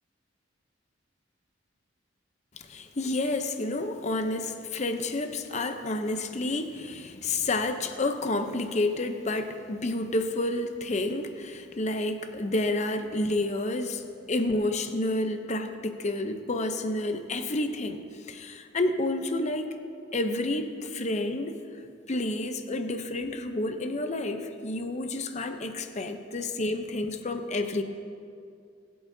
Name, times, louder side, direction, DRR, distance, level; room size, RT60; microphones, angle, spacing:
voice 1, 2.5-14.0 14.3-19.7 20.1-21.6 22.1-27.8, left 2 dB, 35° left, 7 dB, 0.6 m, -30 dB
22.5 x 8.7 x 2.7 m, 2.4 s
head